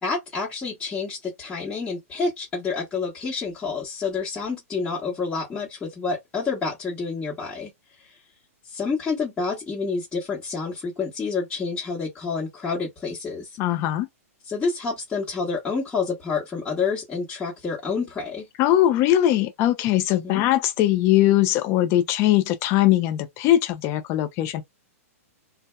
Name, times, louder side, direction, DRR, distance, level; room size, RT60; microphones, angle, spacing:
voice 1, 0.0-7.7 8.7-13.5 14.5-18.5 20.2-20.4, left 4 dB, 15° left, 1.1 m, -28 dB
voice 2, 13.6-14.1 18.6-24.6, left 13 dB, 30° left, 0.4 m, -20 dB
2.7 x 2.1 x 2.2 m
hypercardioid pair, 135°, 8 cm